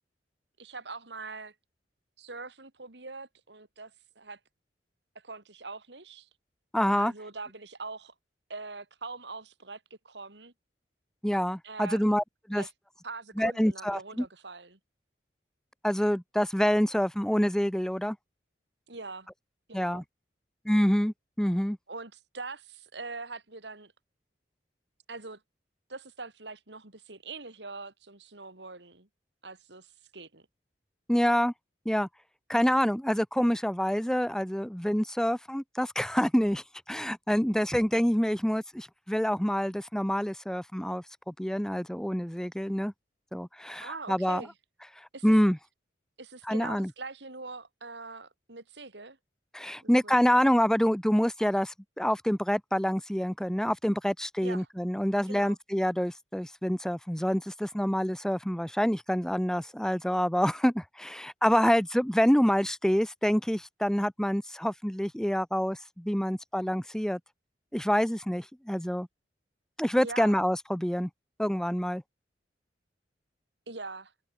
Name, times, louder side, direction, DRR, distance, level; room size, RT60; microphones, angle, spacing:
voice 1, 0.6-1.5 2.2-4.4 5.2-6.3 6.9-8.1 8.5-10.5 11.6-12.2 12.5-12.7 13.0-14.8 18.9-19.3 19.7-20.0 21.9-23.9 25.1-25.4 25.9-29.1 29.4-30.5 43.8-44.5 45.1-45.3 46.2-49.2 50.0-50.4 54.4-54.7 55.3-55.6 70.0-70.4 73.7-74.1, right 3 dB, 75° right, 3.4 m, -43 dB
voice 2, 6.7-7.1 11.2-12.6 13.4-14.3 15.8-18.2 19.7-20.0 20.6-21.8 31.1-31.5 31.8-32.1 32.5-42.9 43.3-44.5 45.0-45.6 46.5-46.9 49.5-67.2 67.7-69.1 69.8-71.1 71.4-72.0, equal, 5° left, 0.9 m, -27 dB
head